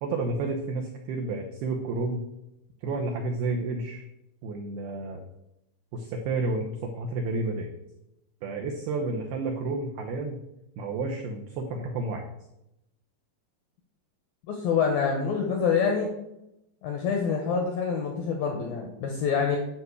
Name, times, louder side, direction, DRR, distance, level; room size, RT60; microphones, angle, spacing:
voice 1, 0.0-2.2 2.8-4.0 4.4-5.2 5.9-7.7 8.4-10.4 10.8-12.3, right 3 dB, 80° right, 2 dB, 2.2 m, -31 dB
voice 2, 14.5-16.1 16.8-19.6, left 6 dB, 75° left, 2 dB, 2.1 m, -26 dB
10.5 x 5.5 x 8.1 m, 0.87 s
omnidirectional pair, 5.9 m